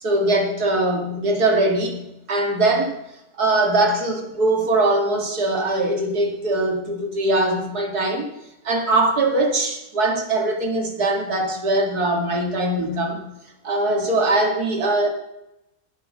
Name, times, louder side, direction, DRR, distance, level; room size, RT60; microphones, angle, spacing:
voice 1, 0.0-2.9 3.4-8.3 8.6-13.2 13.6-15.1, right 2 dB, 90° right, 2 dB, 2.7 m, -21 dB
19.0 x 6.6 x 6.4 m, 0.87 s
omnidirectional pair, 1.6 m